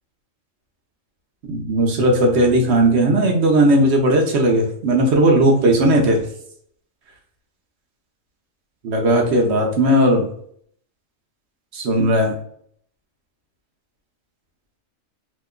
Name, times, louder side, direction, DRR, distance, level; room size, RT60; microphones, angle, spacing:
voice 1, 1.5-6.2 8.8-10.3 11.7-12.3, right 1 dB, 60° right, 0 dB, 1.0 m, -16 dB
2.9 x 2.1 x 3.6 m, 0.65 s
omnidirectional pair, 1.4 m